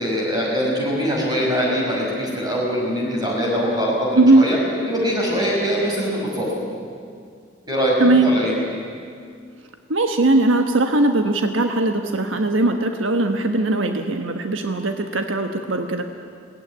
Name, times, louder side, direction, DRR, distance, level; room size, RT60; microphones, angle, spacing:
voice 1, 0.0-4.6 4.9-6.5 7.6-8.5, equal, 20° right, -3 dB, 5.8 m, -22 dB
voice 2, 4.1-4.5 8.0-8.3 9.9-16.0, right 2 dB, 85° right, 5 dB, 1.3 m, -19 dB
22.0 x 18.0 x 9.8 m, 2.2 s
head